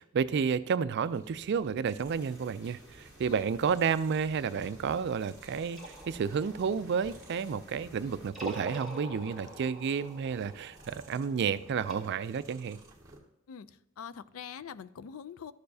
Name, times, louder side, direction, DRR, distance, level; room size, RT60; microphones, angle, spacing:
voice 1, 0.0-12.8, right 6 dB, 55° right, 15 dB, 0.3 m, -31 dB
sound 1, 1.0-13.2, right 1 dB, 15° right, 1.7 m, -56 dB
sound 2, 2.0-8.3, equal, 15° left, 1.6 m, -56 dB
sound 3, 5.6-7.8 8.2-11.9, right 1 dB, ahead, 1.6 m, -46 dB
voice 2, 13.5-15.5, left 7 dB, 85° left, 16 dB, 0.4 m, -44 dB
13.5 x 6.7 x 2.7 m, 0.84 s
head